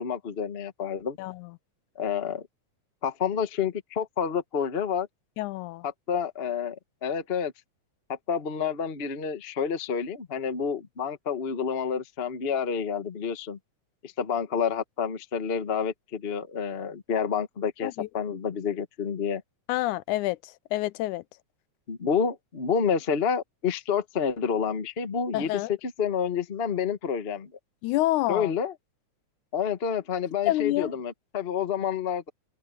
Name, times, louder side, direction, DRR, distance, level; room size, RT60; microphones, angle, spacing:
voice 1, 0.0-1.2 1.9-2.5 3.0-5.1 6.1-6.8 7.0-7.5 8.1-13.6 14.0-19.4 21.9-25.5 26.0-27.5 28.3-28.7 29.5-32.3, left 7 dB, 50° left, 0.7 m, -29 dB
voice 2, 1.2-1.6 5.4-5.9 17.8-18.1 19.7-21.2 25.3-25.7 27.8-28.5 30.5-30.9, left 16 dB, 85° left, 2.1 m, -28 dB
open air
omnidirectional pair, 3.4 m